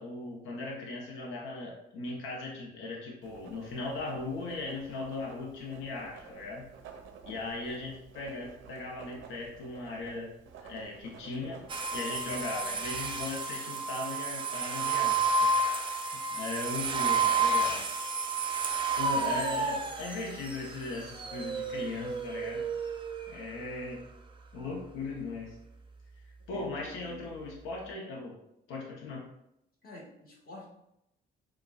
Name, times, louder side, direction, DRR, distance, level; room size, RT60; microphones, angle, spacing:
voice 1, 0.0-6.7 7.3-10.3 10.6-11.6 11.9-15.5 15.9-17.8 19.0-22.7 23.3-24.0 24.5-25.6 26.5-28.4 28.7-29.2, left 3 dB, 85° left, -2 dB, 0.7 m, -38 dB
Writing, 3.2-12.6, right 6 dB, 80° right, 0.5 m, -51 dB
sound 1, 11.7-23.4, right 3 dB, 25° right, 0.4 m, -31 dB
voice 2, 26.4-27.3 29.8-30.7, left 1 dB, 50° left, -3 dB, 1.4 m, -49 dB
4.7 x 2.2 x 2.3 m, 0.81 s
cardioid pair, 90°, 20 cm